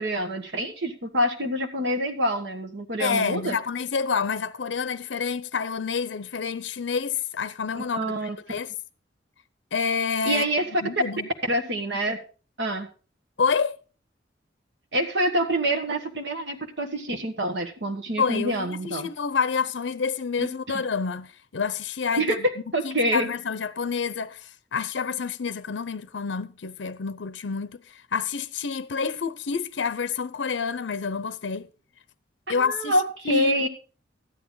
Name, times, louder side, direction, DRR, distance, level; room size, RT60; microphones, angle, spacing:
voice 1, 0.0-3.6 7.8-8.4 10.3-10.6 11.5-12.2 12.6-12.9 14.9-19.1 20.4-20.8 22.2-23.3 32.5-33.7, right 1 dB, 70° right, 1.4 m, -26 dB
voice 2, 3.0-8.2 8.5-8.7 9.7-10.5 10.8-11.3 13.4-13.8 18.2-22.5 22.8-31.7 32.5-33.6, left 5 dB, 85° left, 0.6 m, -28 dB
13.0 x 10.0 x 3.9 m
head